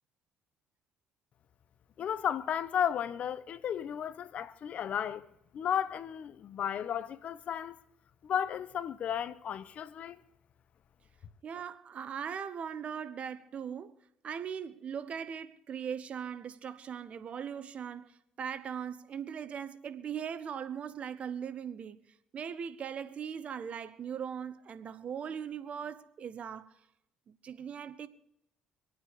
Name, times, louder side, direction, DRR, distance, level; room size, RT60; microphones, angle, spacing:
voice 1, 2.0-5.2 5.5-7.8 8.2-10.2, left 9 dB, 55° left, 0.9 m, -34 dB
voice 2, 11.4-13.9 14.2-22.0 22.3-26.8 27.3-28.1, right 7 dB, 50° right, 1.1 m, -39 dB
25.0 x 9.3 x 4.9 m
supercardioid pair, 65°, 3 cm